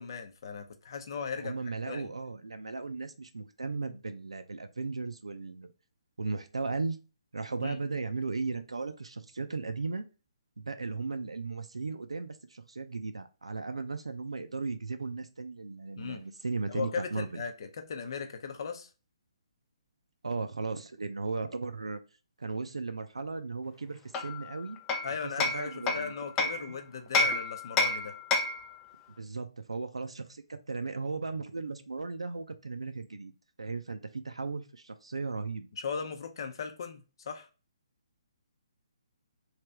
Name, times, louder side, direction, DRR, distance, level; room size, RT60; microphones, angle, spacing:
voice 1, 0.0-1.6 1.9-2.1 7.6-7.8 16.0-16.2 16.7-18.9 25.0-28.1 35.8-37.5, left 6 dB, 50° left, 0.7 m, -38 dB
voice 2, 1.4-5.7 6.2-7.0 7.3-10.1 10.6-17.4 20.2-22.0 22.4-24.8 25.2-26.1 27.2-27.3 29.2-33.3 33.6-35.7, right 4 dB, 80° right, 0.5 m, -36 dB
Hammer, 24.1-26.7 27.1-28.7, left 3 dB, 20° left, 0.5 m, -29 dB
3.2 x 2.8 x 3.3 m
figure-of-eight pair, 140°, 3 cm